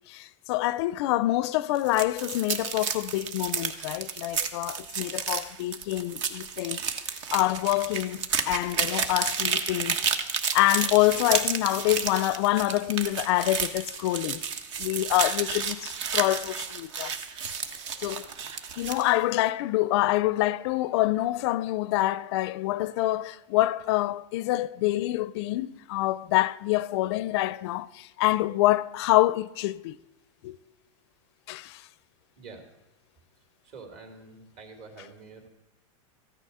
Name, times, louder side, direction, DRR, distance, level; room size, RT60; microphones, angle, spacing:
voice 1, 0.1-6.8 7.3-10.0 10.5-14.4 14.8-17.1 18.0-18.3 18.8-30.0 30.4-30.6 31.5-31.8, left 17 dB, 55° left, 0.4 m, -26 dB
sound 1, 1.7-19.1, right 6 dB, 65° right, 1.3 m, -31 dB
voice 2, 33.6-35.5, right 4 dB, 50° right, 3.1 m, -46 dB
14.5 x 9.9 x 5.5 m
supercardioid pair, 145°, 17 cm